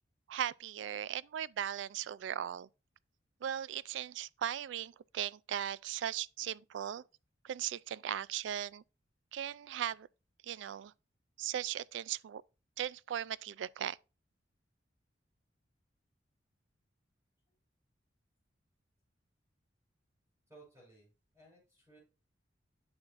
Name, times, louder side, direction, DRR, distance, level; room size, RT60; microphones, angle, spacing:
voice 1, 0.3-2.7 3.4-7.0 7.4-8.8 9.3-10.1 10.4-10.9 11.4-12.4 12.8-14.0, right 10 dB, 75° right, 0.3 m, -38 dB
voice 2, 20.5-22.0, right 2 dB, 15° right, 4.4 m, -60 dB
9.6 x 6.1 x 2.5 m
head